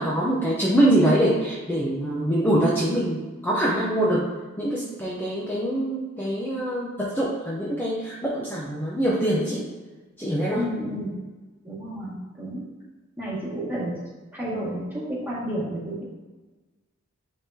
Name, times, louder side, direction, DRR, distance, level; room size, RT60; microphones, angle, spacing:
voice 1, 0.0-4.3 4.6-9.7 10.2-10.6, right 1 dB, 10° left, -6 dB, 0.7 m, -24 dB
voice 2, 10.5-11.1 11.6-12.6 13.2-13.9 14.3-16.0, equal, 10° right, -8 dB, 1.9 m, -31 dB
9.0 x 3.7 x 2.8 m, 1.2 s
head